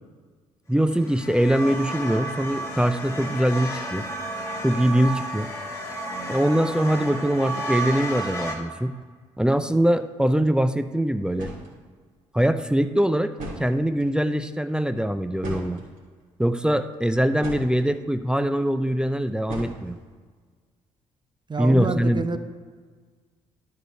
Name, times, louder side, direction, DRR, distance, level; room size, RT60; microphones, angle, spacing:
voice 1, 0.7-4.1 4.6-5.5 6.3-8.9 9.4-11.5 12.3-13.3 13.6-15.8 16.4-20.0 21.6-22.4, right 1 dB, 5° right, 10 dB, 0.5 m, -22 dB
sound 1, 0.9-8.6, right 1 dB, 20° left, 2.2 m, -32 dB
sound 2, 11.0-11.1 11.3-11.7 12.9-13.0 13.3-14.1 15.4-16.2 16.9-17.9 19.5-20.1, right 1 dB, 60° right, 2.8 m, -37 dB
voice 2, 21.5-22.4, right 4 dB, 30° right, 9 dB, 0.9 m, -27 dB
12.0 x 4.8 x 4.6 m, 1.5 s
hypercardioid pair, 45°, 16 cm